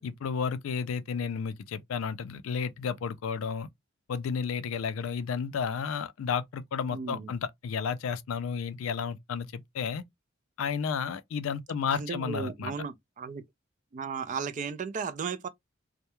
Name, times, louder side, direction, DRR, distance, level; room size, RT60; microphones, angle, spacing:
voice 1, 0.0-3.7 4.1-10.0 10.6-12.7, left 6 dB, 75° left, 0.4 m, -32 dB
voice 2, 6.9-7.3 11.9-13.4 13.9-15.5, right 5 dB, 35° right, 0.3 m, -35 dB
2.2 x 2.0 x 2.9 m
head